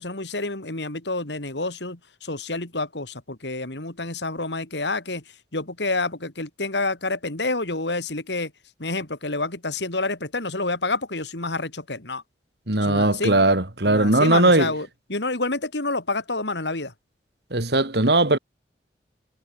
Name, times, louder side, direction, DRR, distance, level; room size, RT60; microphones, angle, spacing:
voice 1, 0.0-5.2 5.5-8.5 8.8-12.2 12.8-13.3 13.9-16.9, left 2 dB, 75° left, 3.2 m, -28 dB
voice 2, 12.7-14.7 17.5-18.4, right 2 dB, 65° right, 2.6 m, -19 dB
head